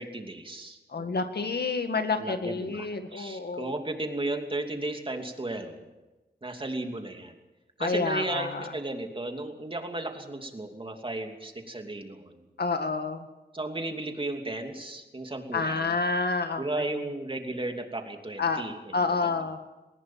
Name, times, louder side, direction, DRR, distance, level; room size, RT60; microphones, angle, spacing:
voice 1, 0.0-1.1 2.2-5.8 6.4-7.3 7.8-12.4 13.5-15.9 16.6-18.9 19.2-19.4, right 2 dB, 30° right, 4 dB, 2.8 m, -35 dB
voice 2, 0.9-3.8 7.8-8.7 12.6-13.3 15.5-17.1 18.4-18.6 18.9-19.6, left 4 dB, 70° left, 7 dB, 1.9 m, -29 dB
20.0 x 19.0 x 7.5 m, 1.1 s
wide cardioid pair, 100°, 17 cm